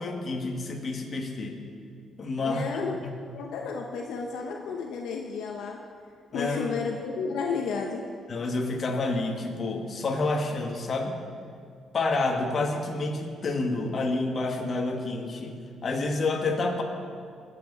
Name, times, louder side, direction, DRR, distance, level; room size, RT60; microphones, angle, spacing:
voice 1, 0.0-1.6 2.2-2.7 3.0-3.1 6.3-6.7 8.3-11.1 11.9-16.8, left 3 dB, 45° left, 2 dB, 1.8 m, -29 dB
voice 2, 2.4-3.0 3.3-5.8 6.3-8.0, left 5 dB, 80° left, 1 dB, 1.0 m, -32 dB
20.5 x 7.7 x 4.1 m, 2.3 s
cardioid pair, 90°, 0 cm